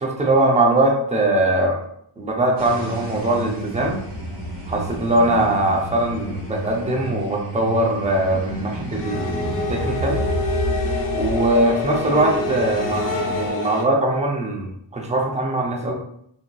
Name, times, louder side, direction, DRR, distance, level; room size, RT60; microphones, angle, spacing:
voice 1, 0.0-1.8 2.2-4.0 4.7-10.2 11.1-15.9, right 1 dB, 15° right, 0 dB, 0.4 m, -21 dB
sound 1, 2.6-13.5, left 1 dB, 85° right, 1.0 m, -31 dB
creepy violin - psycho, 8.9-13.8, left 2 dB, 45° left, 0.4 m, -27 dB
2.7 x 2.5 x 2.3 m, 0.70 s
wide cardioid pair, 115°, 49 cm